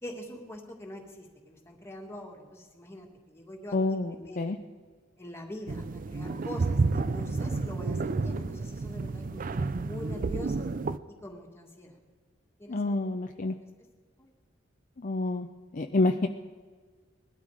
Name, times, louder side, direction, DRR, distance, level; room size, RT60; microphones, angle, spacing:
voice 1, 0.0-4.5 5.2-10.7 11.1-11.9 12.6-13.3, left 1 dB, 15° left, 0 dB, 1.9 m, -44 dB
voice 2, 3.7-4.6 12.7-13.5 15.0-15.5 15.7-16.3, left 2 dB, 40° left, 5 dB, 0.5 m, -28 dB
sound 1, 5.7-11.0, right 3 dB, 45° right, 0.5 m, -30 dB
20.0 x 12.5 x 4.9 m, 1.5 s
head